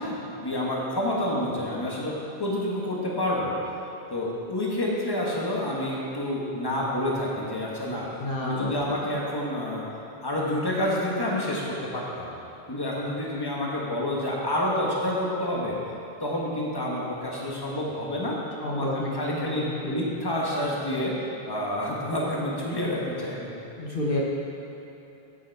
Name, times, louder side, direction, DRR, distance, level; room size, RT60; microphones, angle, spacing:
voice 1, 0.0-3.5 4.1-8.1 8.4-9.9 10.2-12.3 12.7-15.8 16.2-18.4 18.7-21.1 21.5-23.5, left 1 dB, 20° left, -4 dB, 1.4 m, -28 dB
voice 2, 8.2-9.1 18.6-20.0 23.8-24.2, left 1 dB, 60° left, -4 dB, 1.2 m, -30 dB
9.5 x 8.4 x 4.7 m, 2.9 s
omnidirectional pair, 1.1 m